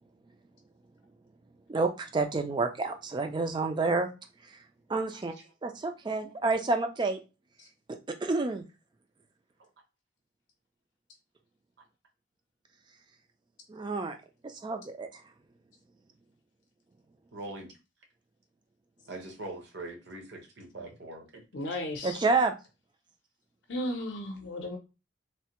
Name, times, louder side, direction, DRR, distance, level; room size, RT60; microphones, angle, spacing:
voice 1, 1.7-4.1 4.4-4.6 4.9-5.3 5.6-7.2 7.9-8.6 13.7-14.2 14.4-15.2 22.0-22.5, right 3 dB, 25° right, 7 dB, 0.3 m, -29 dB
voice 2, 17.3-17.8 19.1-21.4, right 2 dB, 55° right, 2 dB, 0.8 m, -42 dB
voice 3, 21.5-22.2 23.7-24.8, left 1 dB, 60° left, 2 dB, 0.6 m, -34 dB
3.2 x 2.1 x 2.8 m, 0.29 s
head